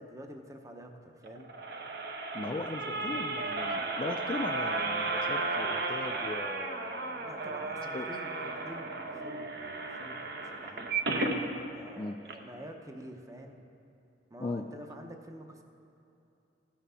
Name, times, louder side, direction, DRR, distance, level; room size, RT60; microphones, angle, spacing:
voice 1, 0.0-1.5 2.8-3.2 7.3-10.9 11.7-13.6 14.3-15.6, right 1 dB, 15° right, 4 dB, 0.7 m, -48 dB
sound 1, 1.2-11.4 11.9-12.0 12.2-12.3, right 3 dB, 60° right, 0.9 m, -34 dB
voice 2, 2.3-8.1 12.0-12.2 14.4-14.6, left 2 dB, 25° left, 6 dB, 0.3 m, -38 dB
15.5 x 5.8 x 5.6 m, 2.8 s
head